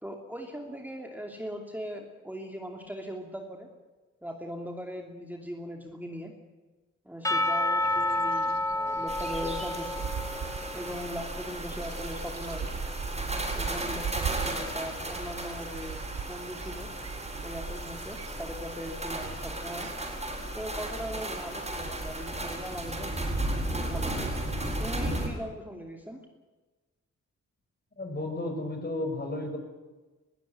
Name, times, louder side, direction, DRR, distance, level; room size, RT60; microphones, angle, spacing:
voice 1, 0.0-3.7 4.2-6.3 7.0-10.1 10.7-12.8 13.5-16.0 16.3-16.9 17.4-19.9 20.5-23.2 23.7-24.4 24.8-26.2, equal, 5° right, 2 dB, 2.8 m, -39 dB
Percussion / Church bell, 7.2-11.1, left 1 dB, 10° left, 1.4 m, -29 dB
sound 1, 7.8-20.1, right 8 dB, 55° right, 1.0 m, -41 dB
sound 2, 9.1-25.3, right 1 dB, 20° right, 7.4 m, -35 dB
voice 2, 28.0-29.6, left 2 dB, 30° left, 5 dB, 5.6 m, -33 dB
21.5 x 15.5 x 9.4 m, 1.2 s
cardioid pair, 75°, 30 cm